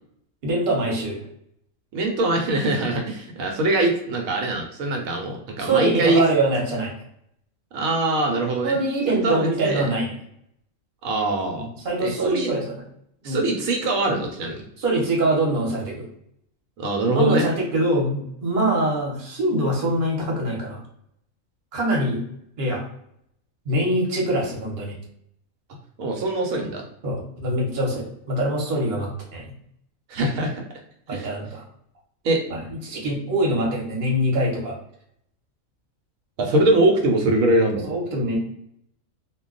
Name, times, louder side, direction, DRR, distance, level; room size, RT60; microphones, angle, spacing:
voice 1, 0.4-1.2 5.6-6.9 8.6-10.1 11.6-12.7 13.2-13.4 14.8-16.1 17.1-20.8 21.7-22.2 22.6-22.8 23.7-24.9 27.0-29.5 31.1-31.6 32.5-34.7 37.9-38.4, right 1 dB, 45° right, -2 dB, 0.9 m, -24 dB
voice 2, 1.9-6.2 7.7-8.8 9.1-9.9 11.0-11.7 12.0-12.5 13.2-14.6 16.8-17.4 26.0-26.8 30.1-30.6 31.1-31.3 32.2-32.4 36.4-37.9, right 2 dB, 80° right, 2 dB, 1.0 m, -22 dB
2.2 x 2.2 x 3.7 m, 0.71 s
omnidirectional pair, 1.4 m